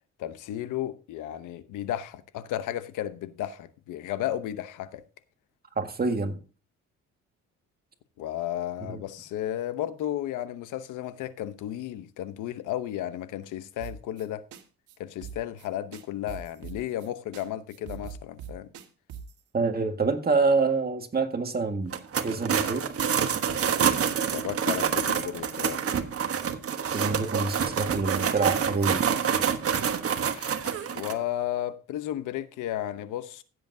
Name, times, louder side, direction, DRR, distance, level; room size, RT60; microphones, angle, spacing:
voice 1, 0.2-5.0 8.2-14.5 15.0-18.7 24.2-25.8 30.3-30.6 30.9-33.4, left 12 dB, 90° left, 0.9 m, -33 dB
voice 2, 5.8-6.4 8.9-9.0 19.5-21.9 22.2-22.9 26.9-29.0, right 4 dB, 30° right, 1.8 m, -26 dB
sound 1, 13.8-14.3 14.5-14.6 14.9-15.0 15.2-15.7 15.9-17.1 17.3-17.4 17.7-19.4, right 9 dB, 85° right, 1.6 m, -41 dB
sound 2, 21.9-31.1, right 7 dB, 50° right, 1.2 m, -27 dB
15.5 x 7.9 x 2.7 m
cardioid pair, 90°, 30 cm